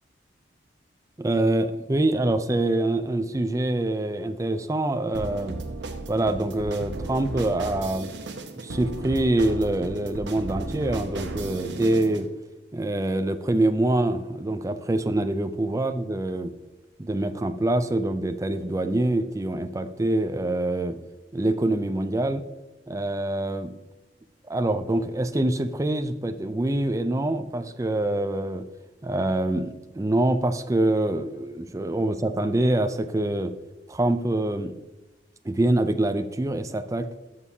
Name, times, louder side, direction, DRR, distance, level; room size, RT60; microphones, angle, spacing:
voice 1, 1.2-5.6 6.1-8.1 8.6-12.3 12.7-16.5 17.0-21.0 21.3-22.4 22.9-23.8 24.5-28.7 29.0-33.5 33.9-34.8 35.4-37.1, right 1 dB, 20° right, 9 dB, 0.4 m, -25 dB
sound 1, 5.1-12.3, right 2 dB, 80° right, 1.0 m, -35 dB
12.5 x 6.3 x 2.8 m, 1.1 s
head